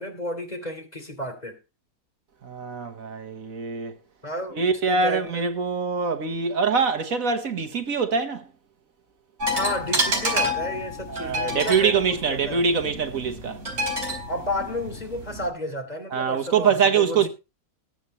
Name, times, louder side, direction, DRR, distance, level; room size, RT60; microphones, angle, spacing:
voice 1, 0.0-1.6 4.2-4.6 4.9-5.5 9.5-12.6 14.3-17.3, left 1 dB, 30° left, 3.1 m, -32 dB
voice 2, 2.4-3.9 4.6-8.5 11.1-13.6 16.1-17.3, right 5 dB, 70° right, 1.7 m, -24 dB
sound 1, 9.4-15.5, equal, 50° right, 4.5 m, -29 dB
20.5 x 8.6 x 3.1 m
omnidirectional pair, 1.5 m